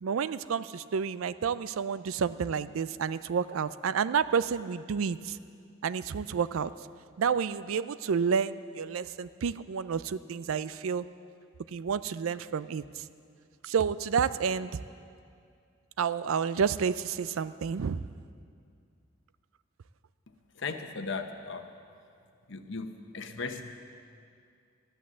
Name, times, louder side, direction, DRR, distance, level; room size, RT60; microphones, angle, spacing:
voice 1, 0.0-5.4 5.8-6.7 7.2-11.0 11.7-13.0 13.6-14.7 16.0-18.0, right 6 dB, 85° right, 15 dB, 0.4 m, -30 dB
voice 2, 20.6-21.7 22.5-23.8, left 4 dB, 65° left, 7 dB, 1.0 m, -37 dB
13.5 x 11.0 x 7.2 m, 2.3 s
head